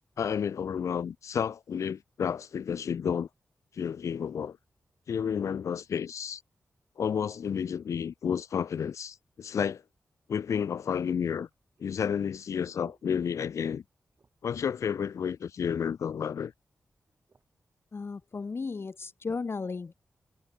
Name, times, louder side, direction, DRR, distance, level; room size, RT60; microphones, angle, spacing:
voice 1, 0.2-3.3 3.7-4.6 5.1-6.4 7.0-9.8 10.3-11.5 11.8-13.8 14.4-16.5, left 7 dB, 75° left, 0.6 m, -31 dB
sound 1, 10.7-13.8 14.1-14.6 15.0-15.1 15.4-16.1 16.7-17.5 18.1-18.3, right 4 dB, 50° right, 6.7 m, -63 dB
voice 2, 17.9-19.9, left 4 dB, 50° left, 1.0 m, -35 dB
cardioid pair, 50°, 5 cm